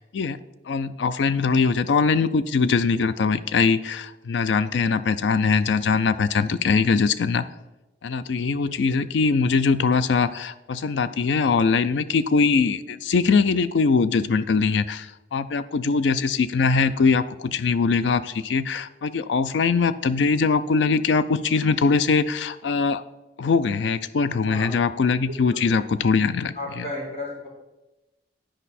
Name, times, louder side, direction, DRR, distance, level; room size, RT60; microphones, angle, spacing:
voice 1, 0.7-7.4 8.0-23.0 23.4-26.8, left 5 dB, 90° left, 14 dB, 0.4 m, -22 dB
voice 2, 25.3-25.6 26.5-27.5, left 2 dB, 35° left, -6 dB, 3.3 m, -34 dB
11.0 x 5.0 x 4.2 m, 1.0 s
head